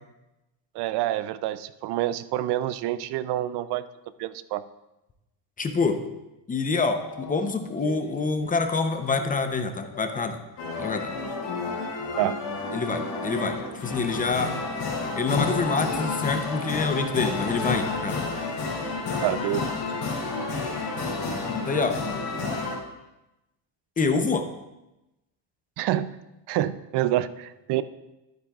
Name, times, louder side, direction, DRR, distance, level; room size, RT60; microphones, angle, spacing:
voice 1, 0.7-3.9 4.2-4.6 12.2-12.4 19.2-19.7 25.8-26.1 26.5-27.8, right 13 dB, 65° right, 15 dB, 0.5 m, -27 dB
voice 2, 5.6-6.0 6.5-10.4 10.8-11.1 12.7-14.5 15.2-18.2 21.6-22.0 24.0-24.5, left 4 dB, 20° left, 7 dB, 0.7 m, -26 dB
sound 1, 6.7-10.4 10.8-13.2 13.5-20.1, left 6 dB, 50° left, 1.0 m, -44 dB
sound 2, 10.6-22.8, left 3 dB, 70° left, 3.6 m, -30 dB
11.5 x 9.1 x 2.4 m, 0.97 s
cardioid pair, 125°, 44 cm